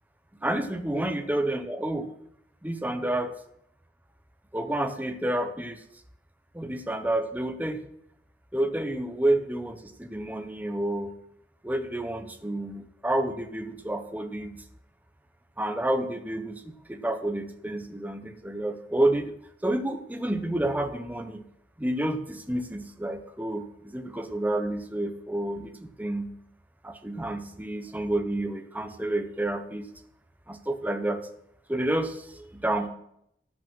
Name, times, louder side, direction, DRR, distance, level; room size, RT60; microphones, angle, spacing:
voice 1, 0.4-2.1 2.6-3.3 4.5-5.8 6.5-7.8 8.5-11.1 11.6-14.6 15.6-19.3 19.6-21.4 21.8-26.3 26.8-29.9 30.5-31.2 31.7-32.9, right 1 dB, 10° right, 7 dB, 0.8 m, -29 dB
11.0 x 6.1 x 6.1 m, 0.75 s
head